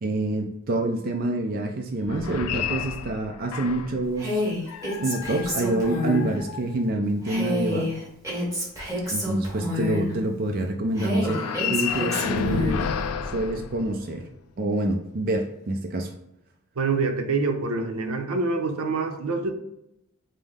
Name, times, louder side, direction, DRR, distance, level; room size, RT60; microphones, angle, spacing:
voice 1, 0.0-4.4 5.0-7.9 9.1-11.4 11.7-12.9 13.3-14.3 14.6-16.1, right 2 dB, 40° right, 3 dB, 0.4 m, -27 dB
sound 1, 2.0-4.0 4.7-7.1 11.2-14.3, left 6 dB, 90° left, 0.4 m, -31 dB
Female speech woman speaking, 4.2-6.3 7.2-10.1 11.0-12.9, left 1 dB, 15° right, 1.2 m, -28 dB
voice 2, 16.8-19.5, right 3 dB, 80° right, 4 dB, 0.6 m, -26 dB
5.4 x 2.0 x 3.4 m, 0.82 s
head